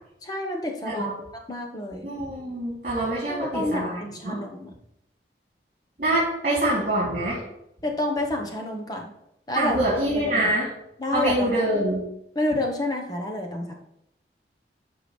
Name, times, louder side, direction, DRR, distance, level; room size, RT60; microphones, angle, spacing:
voice 1, 0.2-1.1 1.3-2.1 3.3-4.7 7.8-9.1 9.5-9.8 10.1-10.5 11.0-11.5 12.3-13.7, left 1 dB, 20° left, 1 dB, 1.1 m, -29 dB
voice 2, 2.0-4.0 4.2-4.4 6.0-7.4 9.5-10.7 11.1-12.0, right 1 dB, 45° right, -8 dB, 3.0 m, -25 dB
13.0 x 4.9 x 3.3 m, 0.80 s
head